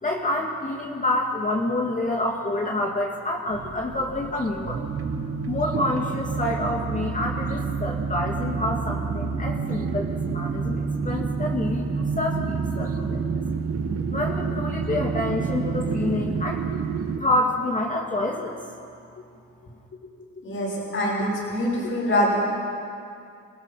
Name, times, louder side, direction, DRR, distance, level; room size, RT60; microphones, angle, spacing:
voice 1, 0.0-4.8 5.5-13.4 14.1-16.7 17.2-18.6, left 1 dB, 25° left, -1 dB, 2.4 m, -27 dB
sound 1, 3.5-17.2, right 5 dB, 50° right, 1.8 m, -28 dB
voice 2, 20.4-22.4, equal, 50° left, -8 dB, 7.1 m, -24 dB
29.5 x 16.5 x 5.8 m, 2.5 s
cardioid pair, 90°, 30 cm